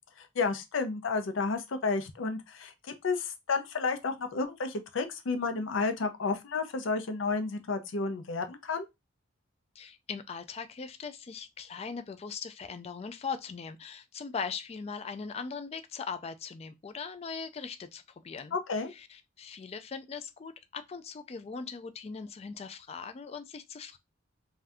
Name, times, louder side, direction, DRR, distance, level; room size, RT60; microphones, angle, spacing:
voice 1, 0.4-2.7 3.0-8.9 18.5-18.9, left 4 dB, 85° left, 0.5 m, -31 dB
voice 2, 9.8-18.6 18.9-24.0, left 5 dB, 30° left, 0.3 m, -40 dB
2.6 x 2.3 x 3.4 m
head